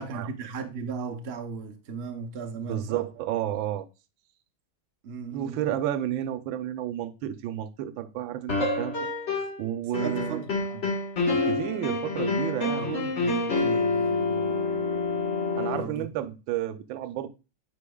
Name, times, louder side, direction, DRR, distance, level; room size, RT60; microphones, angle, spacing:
voice 1, 0.0-3.0 5.0-5.7 9.9-10.9 12.7-15.2 15.7-16.3, right 5 dB, 60° right, 0.6 m, -37 dB
voice 2, 2.7-3.9 5.3-9.0 9.6-10.4 11.3-12.9 15.6-17.3, right 12 dB, 80° right, 1.3 m, -31 dB
sound 1, 8.5-9.7 9.9-15.8, left 3 dB, 40° left, 1.4 m, -27 dB
8.3 x 5.0 x 2.3 m
omnidirectional pair, 2.1 m